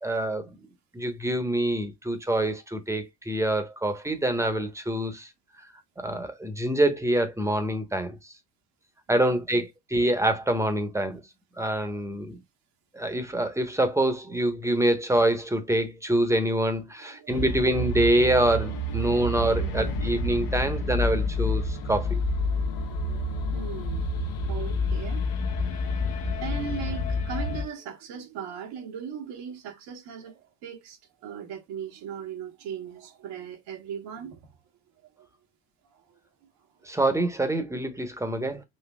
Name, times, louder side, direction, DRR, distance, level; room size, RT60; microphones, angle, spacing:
voice 1, 0.0-0.6 0.9-5.3 6.0-8.2 9.1-11.2 11.6-12.4 12.9-22.2 36.9-38.6, right 1 dB, 5° right, 1.0 m, -25 dB
voice 2, 9.1-9.4 14.7-14.9 17.0-17.3 19.0-19.2 19.6-20.0 20.6-20.7 22.7-34.5 35.2-35.3 35.9-36.2, right 8 dB, 65° right, 1.3 m, -39 dB
sound 1, 17.3-27.6, left 2 dB, 50° left, 1.0 m, -28 dB
6.3 x 2.7 x 2.3 m
hypercardioid pair, 70°, 44 cm